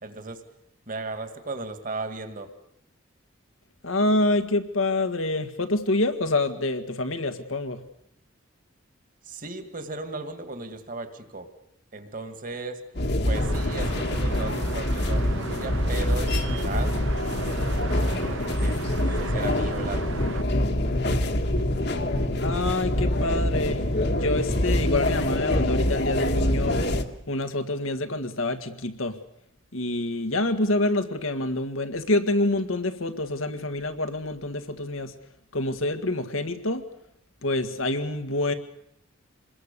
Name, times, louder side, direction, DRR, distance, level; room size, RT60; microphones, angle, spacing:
voice 1, 0.0-0.4 0.9-2.5 9.2-11.5 11.9-12.8 13.2-17.0 17.5-18.8 19.2-20.2, right 3 dB, 40° right, 8 dB, 2.1 m, -36 dB
voice 2, 3.8-7.8 22.4-26.8 27.3-29.2 29.7-35.1 35.5-36.8 37.4-38.5, left 2 dB, 85° left, 8 dB, 1.9 m, -26 dB
sound 1, 13.0-27.0, left 1 dB, 55° left, 1.6 m, -25 dB
sound 2, 13.3-20.4, right 4 dB, 75° right, 1.0 m, -37 dB
27.0 x 21.0 x 6.9 m, 0.76 s
head